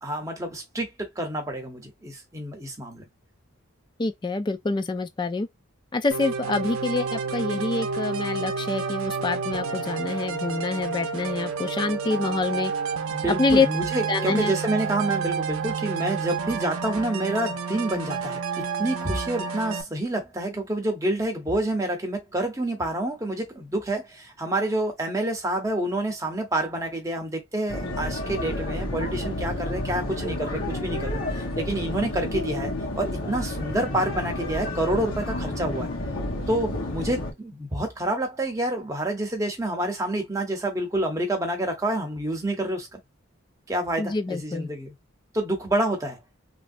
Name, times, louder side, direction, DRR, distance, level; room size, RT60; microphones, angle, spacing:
voice 1, 0.0-3.0 13.1-35.9 36.5-43.0 43.7-44.9 45.3-46.2, right 1 dB, 15° right, 0.8 m, -28 dB
voice 2, 4.0-5.5 5.9-12.7 13.3-13.7 14.1-14.5 44.0-44.7, left 3 dB, 20° left, 0.3 m, -26 dB
sound 1, 6.1-19.8, right 5 dB, 90° right, 0.6 m, -30 dB
sound 2, 27.7-37.3, left 1 dB, 75° left, 1.1 m, -30 dB
3.2 x 2.6 x 2.6 m
head